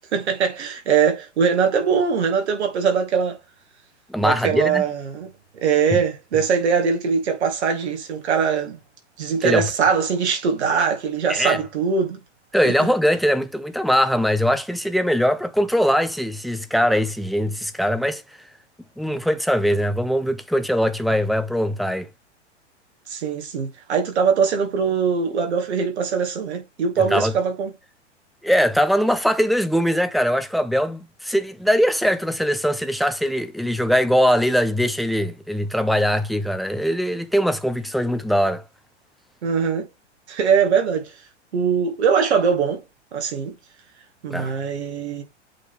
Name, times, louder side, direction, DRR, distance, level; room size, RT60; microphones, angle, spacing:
voice 1, 0.1-3.4 4.2-5.3 5.6-8.8 9.2-12.2 12.6-12.9 23.1-27.7 39.4-39.9 40.3-41.1 41.5-42.8 43.1-43.6 44.2-45.2, right 6 dB, 65° right, 2.3 m, -21 dB
voice 2, 4.1-4.8 9.4-9.7 11.3-11.6 12.5-18.2 19.0-22.1 27.0-27.3 28.4-38.6 44.3-44.5, equal, ahead, 0.7 m, -21 dB
8.3 x 3.8 x 3.7 m
figure-of-eight pair, 100°, 36 cm